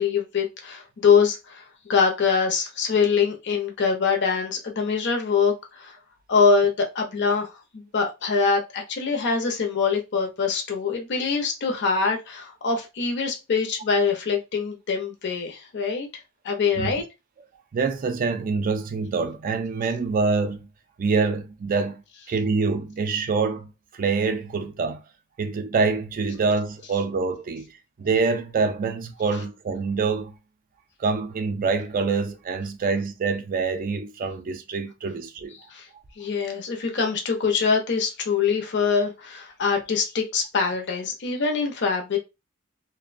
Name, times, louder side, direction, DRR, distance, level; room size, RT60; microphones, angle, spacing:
voice 1, 0.0-1.6 1.9-5.9 6.3-16.1 16.4-17.0 35.7-35.9 36.2-42.2, left 5 dB, 55° left, 0.6 m, -24 dB
voice 2, 17.7-20.7 21.0-25.0 25.4-27.7 28.0-30.3 31.0-35.6, right 4 dB, 40° right, 0.4 m, -25 dB
2.5 x 2.1 x 2.4 m
head